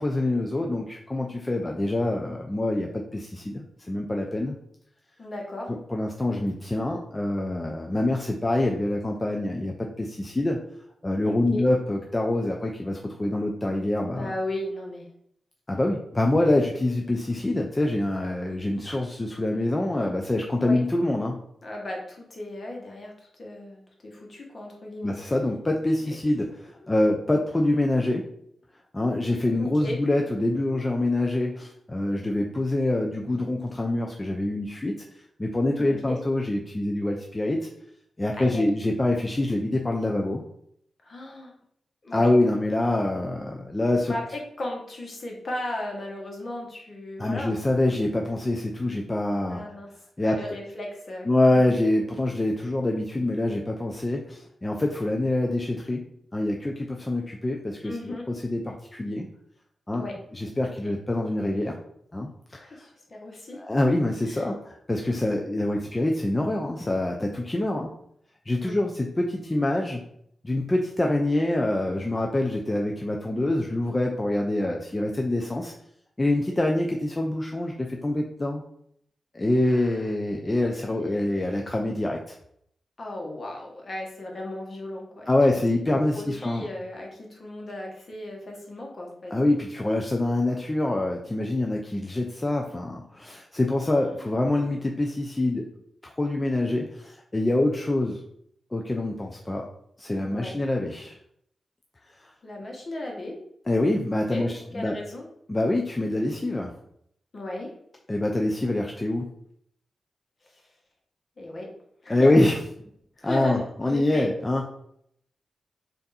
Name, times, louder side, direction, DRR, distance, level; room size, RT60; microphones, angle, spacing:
voice 1, 0.0-4.6 5.9-10.6 11.0-14.3 15.7-21.4 25.0-28.3 28.9-35.0 35.4-37.7 38.2-40.4 42.1-44.1 47.2-49.6 50.2-50.4 51.3-57.9 58.3-59.3 59.9-60.0 60.3-61.8 62.1-62.9 63.5-67.9 68.5-70.0 70.4-75.7 76.2-78.6 79.3-82.4 85.3-86.7 89.3-95.7 96.0-98.2 98.7-99.7 100.0-101.1 102.2-102.3 103.7-105.0 105.5-106.7 108.1-109.3 112.1-112.6 113.2-114.7, left 1 dB, 25° left, 1 dB, 0.5 m, -25 dB
voice 2, 5.2-5.7 11.2-11.7 14.1-15.1 20.6-20.8 21.6-25.1 26.0-26.2 26.7-26.9 27.3-27.4 29.6-30.0 35.8-36.2 38.4-38.7 41.0-41.5 42.0-42.3 44.0-47.5 49.5-49.9 50.2-51.8 57.8-58.3 59.9-60.1 60.8-60.9 62.5-63.6 64.2-64.5 68.6-68.7 79.6-80.1 80.7-80.8 81.2-81.5 83.0-89.3 93.8-94.3 100.3-100.6 102.4-103.3 104.3-105.3 107.3-107.7 110.4-110.7 111.4-111.7 112.0-112.4 113.2-114.3, left 1 dB, 50° left, 0 dB, 1.2 m, -36 dB
3.4 x 2.6 x 4.1 m, 0.71 s
cardioid pair, 60°, 0 cm